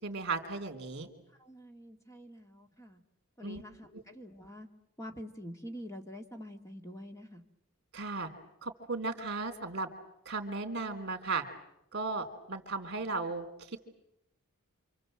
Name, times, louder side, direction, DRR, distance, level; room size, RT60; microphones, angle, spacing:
voice 1, 0.0-1.1 3.4-3.6 7.9-8.3 8.6-9.9 10.2-11.4 11.9-13.8, right 3 dB, 50° right, 7 dB, 3.3 m, -36 dB
voice 2, 1.3-3.0 3.4-4.7 5.0-7.4, equal, 15° left, 5 dB, 1.8 m, -46 dB
28.0 x 25.5 x 7.8 m, 0.84 s
head